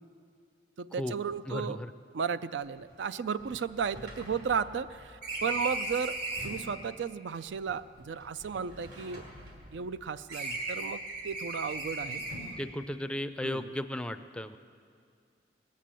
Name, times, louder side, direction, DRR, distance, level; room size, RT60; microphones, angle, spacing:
voice 1, 0.8-1.8 2.1-6.2 6.4-9.2 9.7-12.2 13.4-13.7, right 6 dB, 90° right, 14 dB, 0.4 m, -34 dB
voice 2, 1.5-1.9 12.6-14.6, left 1 dB, 5° left, 10 dB, 0.4 m, -35 dB
sound 1, 2.6-2.7 2.9-3.0 3.4-6.7 7.5-10.0 10.3-12.6, right 2 dB, 65° right, 2.9 m, -38 dB
19.0 x 8.5 x 7.5 m, 2.3 s
head